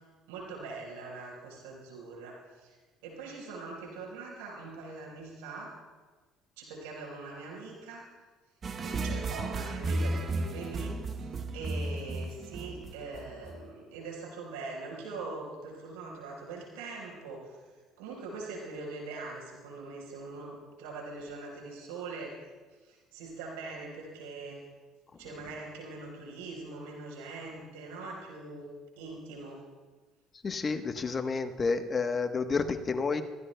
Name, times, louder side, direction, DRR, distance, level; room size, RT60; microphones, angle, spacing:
voice 1, 0.3-2.8 3.0-5.7 6.6-8.0 8.8-22.4 22.8-24.6 25.2-29.7, right 3 dB, 90° right, -2 dB, 4.4 m, -42 dB
sound 1, 8.6-13.6, right 2 dB, 40° right, 0.9 m, -34 dB
voice 2, 30.4-33.2, left 4 dB, 35° left, 7 dB, 1.1 m, -30 dB
26.0 x 15.5 x 2.3 m, 1.4 s
supercardioid pair, 80°, 0 cm